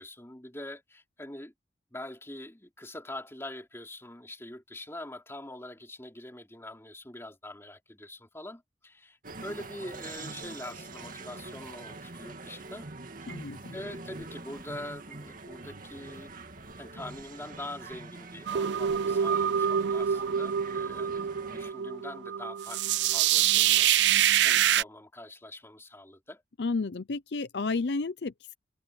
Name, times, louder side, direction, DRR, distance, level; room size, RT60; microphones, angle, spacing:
voice 1, 0.0-1.5 1.9-12.9 13.7-16.4 16.8-26.4, left 1 dB, 15° left, 3.2 m, -44 dB
sound 1, 9.2-21.7, right 3 dB, 50° right, 2.1 m, -44 dB
voice 2, 13.3-13.8 26.6-28.5, left 3 dB, 70° left, 0.6 m, -32 dB
sound 2, 18.5-24.8, right 10 dB, 75° right, 0.4 m, -26 dB
head